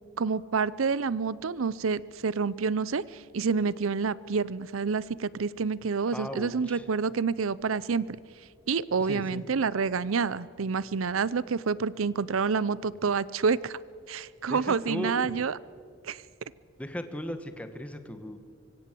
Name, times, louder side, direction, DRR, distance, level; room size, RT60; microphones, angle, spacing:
voice 1, 0.2-8.2 8.7-13.8 14.1-15.6 16.0-16.2, right 5 dB, 85° right, 19 dB, 0.6 m, -28 dB
voice 2, 6.1-6.8 9.1-9.5 14.5-15.4 16.8-18.5, equal, 5° left, 8 dB, 1.6 m, -37 dB
25.0 x 24.5 x 7.7 m, 2.2 s
head